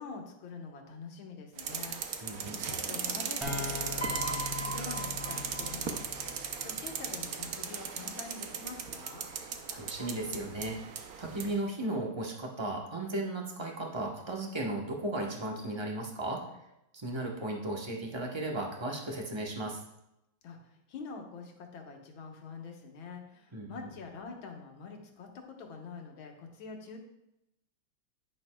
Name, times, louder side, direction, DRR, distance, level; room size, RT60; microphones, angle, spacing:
voice 1, 0.0-6.1 6.6-9.3 20.4-27.0, left 4 dB, 65° left, 2 dB, 1.9 m, -46 dB
sound 1, 1.6-11.6, right 7 dB, 75° right, 0.8 m, -37 dB
voice 2, 2.2-2.6 9.7-16.4 16.9-19.8 23.5-23.7, right 1 dB, 40° right, 0 dB, 0.4 m, -35 dB
sound 2, 3.4-7.1, left 5 dB, ahead, 1.8 m, -41 dB
Piano, 4.0-6.4 7.4-7.7, equal, 30° left, 2.0 m, -40 dB
10.5 x 9.3 x 2.3 m, 0.85 s
omnidirectional pair, 2.4 m